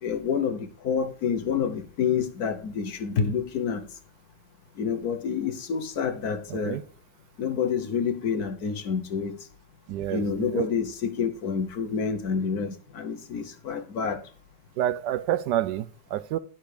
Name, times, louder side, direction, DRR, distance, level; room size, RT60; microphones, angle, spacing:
voice 1, 0.0-3.9 4.8-6.8 7.4-9.4 10.1-14.2, left 6 dB, 60° left, 1.4 m, -28 dB
voice 2, 6.5-6.8 9.9-10.7 14.8-16.4, right 12 dB, 75° right, 1.2 m, -28 dB
10.5 x 5.8 x 4.9 m
omnidirectional pair, 1.9 m